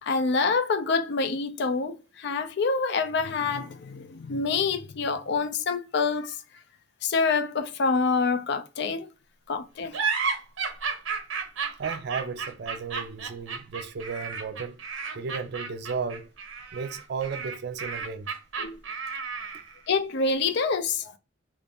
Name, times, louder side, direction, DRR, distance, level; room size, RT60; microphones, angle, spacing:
voice 1, 0.0-6.4 7.0-9.1 9.5-10.0 18.6-18.8 19.9-21.1, left 4 dB, 60° left, 0.4 m, -26 dB
sound 1, 9.9-19.8, right 5 dB, 85° right, 0.7 m, -32 dB
voice 2, 11.8-14.8 15.1-16.3 16.7-18.4, right 5 dB, 55° right, 0.4 m, -34 dB
2.5 x 2.5 x 3.4 m
head